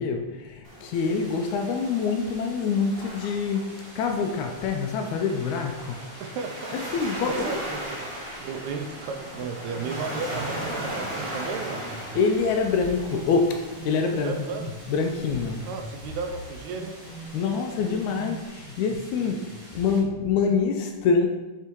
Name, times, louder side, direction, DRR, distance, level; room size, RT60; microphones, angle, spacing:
voice 1, 0.0-6.0 6.7-7.6 12.1-14.4 14.9-15.7 17.3-21.3, left 5 dB, 80° left, 4 dB, 1.8 m, -26 dB
Waves surf, 0.6-18.5, equal, 65° right, 0.5 m, -39 dB
sound 1, 0.9-20.0, equal, 25° right, 1.4 m, -48 dB
voice 2, 6.2-7.0 7.3-11.8 14.2-14.7 15.7-17.0, right 5 dB, 80° right, 4 dB, 1.7 m, -34 dB
sound 2, 9.3-20.6, right 2 dB, 55° left, 0.5 m, -43 dB
6.9 x 3.6 x 4.5 m, 1.1 s
omnidirectional pair, 3.6 m